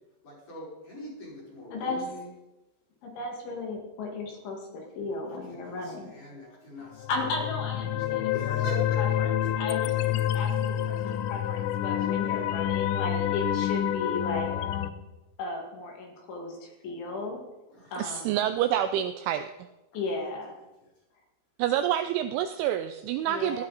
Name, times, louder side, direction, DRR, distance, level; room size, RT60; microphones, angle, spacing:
voice 1, 0.2-2.3 5.5-7.4 8.3-9.0 9.4-9.5 11.0-11.1 12.0-12.5 13.4-13.5 17.7-18.1 23.2-23.5, equal, 40° left, -5 dB, 6.5 m, -42 dB
voice 2, 1.7-2.1 3.0-6.1 7.1-8.6 9.0-9.3 9.6-14.5 15.4-17.4 17.9-18.4 19.9-20.5 23.3-23.6, left 3 dB, 70° left, 1 dB, 4.3 m, -35 dB
sound 1, 7.0-14.9, left 11 dB, 85° left, 2.5 m, -28 dB
voice 3, 18.0-19.5 21.6-23.6, right 11 dB, 85° right, 8 dB, 2.7 m, -27 dB
16.5 x 13.5 x 4.1 m, 1.0 s
omnidirectional pair, 5.9 m